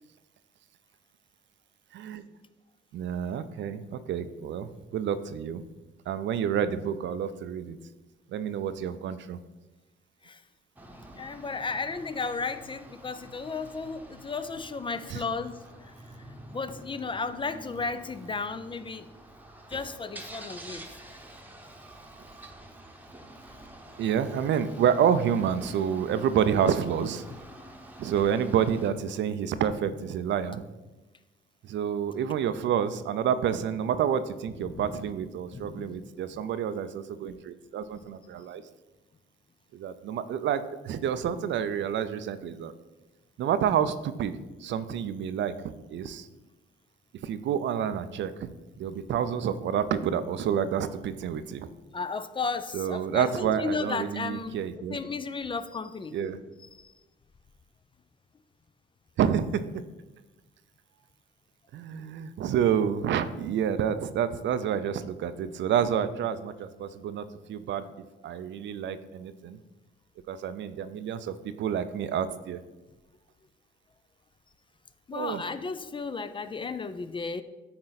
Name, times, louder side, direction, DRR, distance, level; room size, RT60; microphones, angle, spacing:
voice 1, 1.9-2.2 2.9-5.6 6.1-7.8 8.3-9.4 15.1-15.2 24.0-27.2 28.0-30.6 31.6-38.6 39.7-42.7 43.4-45.5 45.9-46.3 47.2-48.5 48.8-51.7 52.7-55.0 56.1-56.4 59.2-59.8 61.7-67.9 68.2-69.6 70.3-72.6 75.1-75.4, right 8 dB, 65° right, 12 dB, 0.5 m, -29 dB
sound 1, 10.8-28.9, right 1 dB, 10° right, 1.0 m, -48 dB
voice 2, 11.2-19.1 19.7-20.9 34.6-35.0 35.5-35.9 48.8-48.9 51.9-54.6 54.9-56.2 56.7-56.9 75.1-77.4, left 4 dB, 25° left, 12 dB, 0.4 m, -34 dB
8.6 x 3.8 x 4.0 m, 1.1 s
cardioid pair, 90°, 20 cm